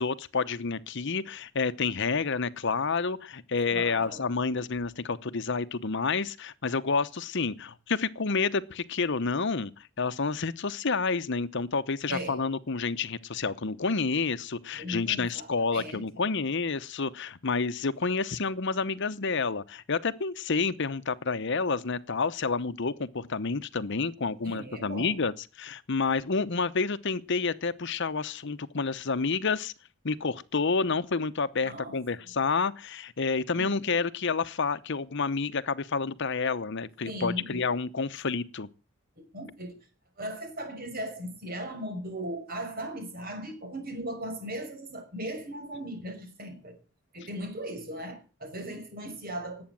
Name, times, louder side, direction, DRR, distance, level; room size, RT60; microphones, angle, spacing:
voice 1, 0.0-25.3 25.6-29.7 30.0-38.7, left 4 dB, 60° left, 0.9 m, -29 dB
voice 2, 3.7-4.2 12.1-12.4 14.8-16.0 24.4-25.2 31.6-32.0 33.5-33.7 37.0-37.6 39.3-39.7 40.2-46.8 47.1-49.6, right 1 dB, 45° right, 5.8 m, -38 dB
19.0 x 8.7 x 7.5 m
head